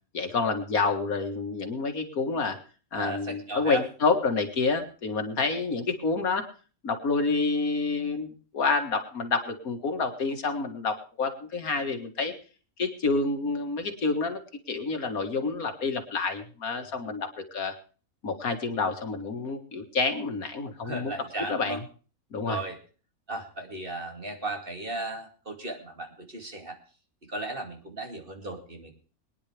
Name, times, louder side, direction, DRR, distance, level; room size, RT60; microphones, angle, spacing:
voice 1, 0.1-2.6 2.9-6.5 6.8-12.3 12.8-14.4 14.7-17.7 18.2-21.1 21.5-21.8 22.3-22.6, left 4 dB, 80° left, 6 dB, 2.2 m, -28 dB
voice 2, 2.9-3.8 20.8-21.8 22.5-22.8 23.3-26.8 27.3-29.0, right 2 dB, 40° right, 3 dB, 2.6 m, -36 dB
22.5 x 10.0 x 3.4 m, 0.38 s
omnidirectional pair, 1.5 m